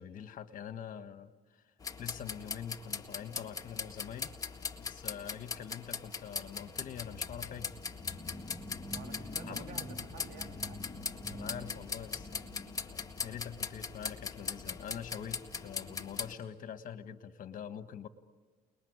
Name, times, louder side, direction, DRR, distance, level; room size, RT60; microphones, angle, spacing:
voice 1, 0.0-1.6 2.0-4.3 4.8-7.7 9.4-9.7 11.3-18.1, left 8 dB, 50° left, 10 dB, 1.5 m, -45 dB
sound 1, 1.8-16.3, left 5 dB, 20° left, 1.8 m, -40 dB
voice 2, 8.9-10.8, right 5 dB, 90° right, 5 dB, 2.9 m, -51 dB
29.5 x 20.5 x 9.7 m, 1.4 s
cardioid pair, 110°, 17 cm